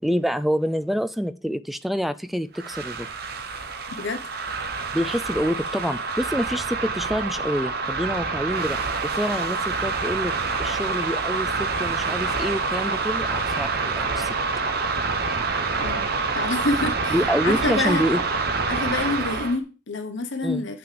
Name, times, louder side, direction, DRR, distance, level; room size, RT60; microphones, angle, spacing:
voice 1, 0.0-3.1 4.9-8.8 9.0-10.3 10.6-14.3 17.1-18.2 20.4-20.7, equal, ahead, 13 dB, 0.3 m, -27 dB
sound 1, 2.5-19.6, right 4 dB, 50° right, 1.0 m, -27 dB
voice 2, 16.3-17.2 17.4-18.0 18.7-20.8, left 3 dB, 65° left, 8 dB, 0.9 m, -27 dB
7.7 x 5.9 x 5.0 m, 0.35 s
head